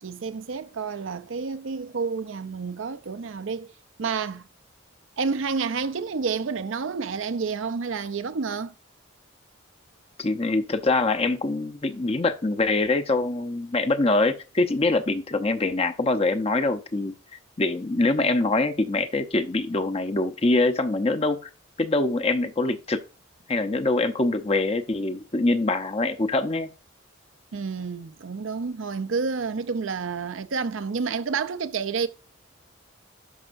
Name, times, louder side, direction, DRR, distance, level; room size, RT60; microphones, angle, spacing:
voice 1, 0.0-3.7 4.0-4.5 5.2-8.7 27.5-32.1, right 5 dB, 70° right, 0.6 m, -29 dB
voice 2, 10.2-17.1 17.6-21.5 21.8-23.0 23.5-26.7, left 2 dB, 30° left, 0.7 m, -24 dB
11.0 x 5.5 x 2.5 m
head